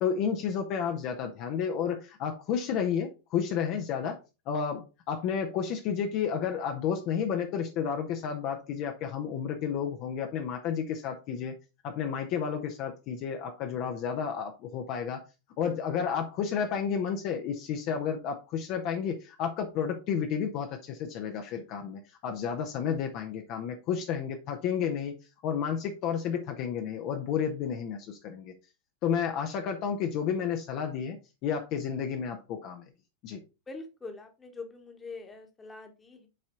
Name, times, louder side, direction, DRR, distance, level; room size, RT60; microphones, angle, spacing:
voice 1, 0.0-4.2 4.5-11.5 11.8-15.2 15.6-25.1 25.4-28.5 29.0-31.2 31.4-32.9 33.2-33.4, left 7 dB, 40° left, 4 dB, 0.9 m, -31 dB
voice 2, 33.7-36.3, left 3 dB, 15° left, 5 dB, 1.4 m, -44 dB
7.7 x 4.3 x 3.8 m, 0.29 s
figure-of-eight pair, 90°, 0 cm